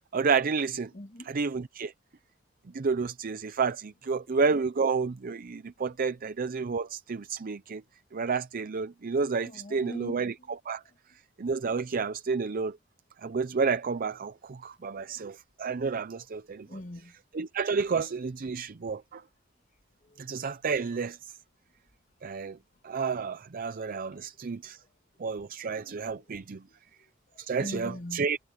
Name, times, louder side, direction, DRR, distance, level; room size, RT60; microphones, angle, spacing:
voice 1, 0.1-0.9 1.3-1.9 2.7-7.8 8.1-10.3 10.7-10.8 11.4-12.8 13.2-16.7 17.3-19.2 20.2-21.2 22.2-22.6 22.8-24.8 25.2-26.6 27.4-28.4, right 5 dB, 45° right, 0.5 m, -30 dB
voice 2, 0.9-1.3 4.2-4.4 9.4-10.5 10.8-11.0 15.0-15.2 16.5-17.1 20.0-20.3 26.0-26.4 26.7-28.3, left 1 dB, 40° left, 2.2 m, -43 dB
head